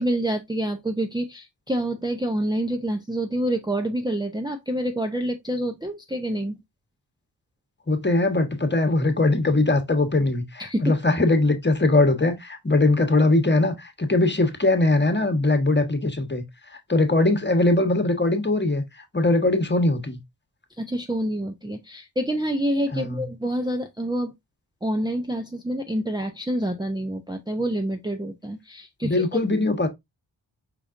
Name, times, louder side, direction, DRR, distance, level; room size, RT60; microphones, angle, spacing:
voice 1, 0.0-6.6 10.6-10.9 20.8-24.3 24.8-29.4, right 1 dB, 10° right, 0.7 m, -27 dB
voice 2, 7.9-16.4 16.9-18.8 19.1-20.2 22.9-23.2 29.0-29.9, left 2 dB, 25° left, 1.3 m, -21 dB
5.2 x 4.0 x 2.5 m
cardioid pair, 50°, 43 cm